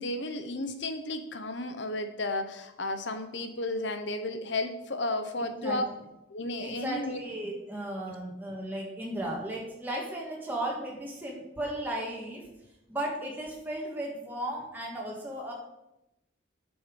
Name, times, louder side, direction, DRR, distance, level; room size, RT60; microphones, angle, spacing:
voice 1, 0.0-5.8 6.3-7.2, left 2 dB, 65° left, 8 dB, 1.0 m, -33 dB
voice 2, 5.3-5.8 6.6-12.4 12.9-15.5, right 1 dB, 10° right, -3 dB, 1.9 m, -35 dB
8.7 x 7.2 x 5.4 m, 0.90 s
head